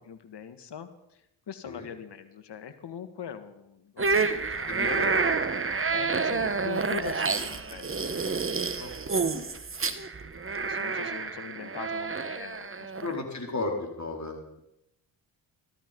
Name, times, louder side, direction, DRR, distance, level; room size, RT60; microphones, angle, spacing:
voice 1, 0.0-5.0 5.9-8.2 10.5-13.1, left 8 dB, 55° left, 11 dB, 1.8 m, -42 dB
sound 1, 4.0-13.2, right 4 dB, 25° right, 1.4 m, -29 dB
voice 2, 4.7-5.3 8.8-9.5 11.8-11.9 13.0-14.6, left 2 dB, 35° left, 2 dB, 4.5 m, -35 dB
14.5 x 13.0 x 5.4 m, 0.86 s
supercardioid pair, 55°, 49 cm